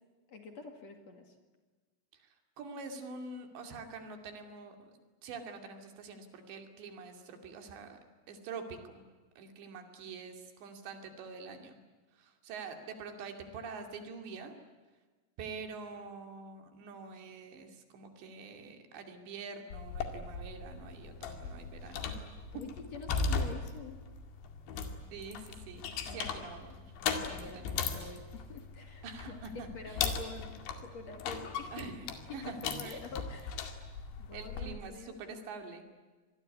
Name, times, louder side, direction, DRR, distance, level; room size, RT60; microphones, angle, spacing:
voice 1, 0.3-1.4 22.5-24.0 26.1-26.4 27.0-31.8 32.4-33.6 34.2-35.4, left 4 dB, 45° left, 5 dB, 2.9 m, -47 dB
voice 2, 2.1-4.9 5.2-8.0 8.3-9.0 9.4-11.8 12.1-14.6 15.4-22.2 22.5-22.6 25.1-26.8 27.4-28.1 29.0-30.1 31.7-32.1 32.3-33.0 34.3-35.8, right 4 dB, 90° right, 5 dB, 4.9 m, -46 dB
sound 1, 19.7-34.7, left 5 dB, 85° left, 4.4 m, -38 dB
26.0 x 21.0 x 9.8 m, 1.4 s
omnidirectional pair, 4.9 m